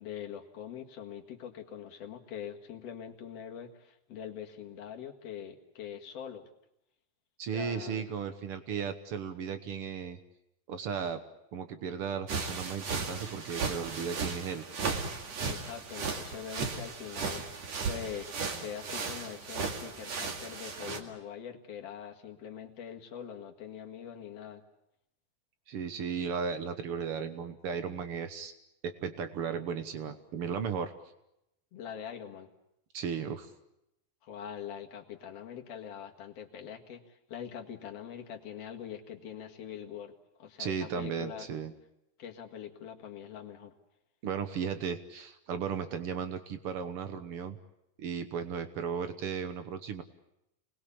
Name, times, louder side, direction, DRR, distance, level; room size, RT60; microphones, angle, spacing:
voice 1, 0.0-6.5 7.4-8.0 15.4-18.3 18.6-24.6 31.7-32.5 34.2-41.5 42.2-43.7, left 8 dB, 50° left, 3 dB, 2.5 m, -43 dB
voice 2, 7.4-10.2 10.7-11.2 11.5-14.6 25.7-28.5 28.8-30.9 32.9-33.5 40.6-41.7 44.2-47.6 48.0-50.0, right 7 dB, 80° right, 9 dB, 1.2 m, -35 dB
sound 1, 12.3-21.0, right 4 dB, 50° right, 3.1 m, -36 dB
28.0 x 20.5 x 8.6 m, 0.84 s
omnidirectional pair, 4.3 m